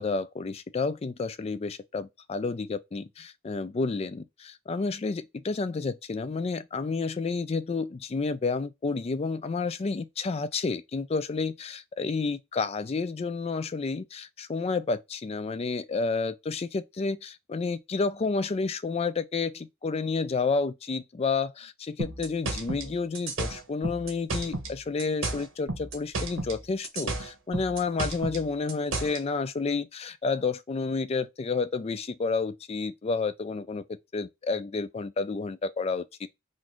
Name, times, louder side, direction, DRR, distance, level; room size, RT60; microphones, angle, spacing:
voice 1, 0.0-36.3, left 4 dB, 30° left, 0.3 m, -30 dB
sound 1, 22.0-24.7 25.0-26.6 26.8-29.2, right 2 dB, 70° right, 1.4 m, -32 dB
4.0 x 2.6 x 2.9 m
head